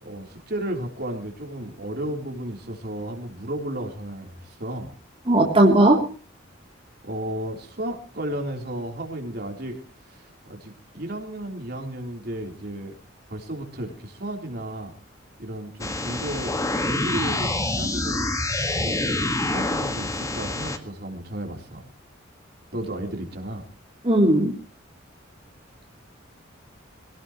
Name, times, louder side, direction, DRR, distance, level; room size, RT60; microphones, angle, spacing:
voice 1, 0.0-4.9 7.0-13.0 13.3-14.9 15.4-18.4 18.7-21.8 22.7-23.7, right 1 dB, 55° right, 2 dB, 3.5 m, -34 dB
voice 2, 5.3-6.0 24.0-24.5, right 1 dB, 30° right, -1 dB, 3.0 m, -17 dB
sound 1, 15.8-20.8, left 2 dB, 15° left, 1.6 m, -26 dB
23.0 x 18.0 x 3.0 m, 0.37 s
head